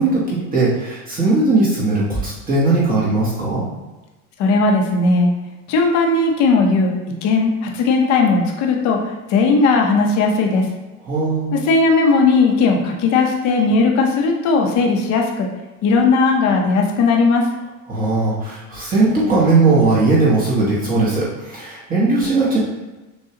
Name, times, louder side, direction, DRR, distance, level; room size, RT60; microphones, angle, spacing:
voice 1, 0.0-3.6 11.1-11.5 17.9-22.6, right 3 dB, 20° right, -7 dB, 1.0 m, -18 dB
voice 2, 4.4-5.3 5.7-6.9 7.2-10.7 11.5-15.5 15.8-17.5, left 3 dB, 40° left, 1 dB, 0.8 m, -17 dB
6.4 x 2.3 x 2.8 m, 1.1 s
supercardioid pair, 140°, 43 cm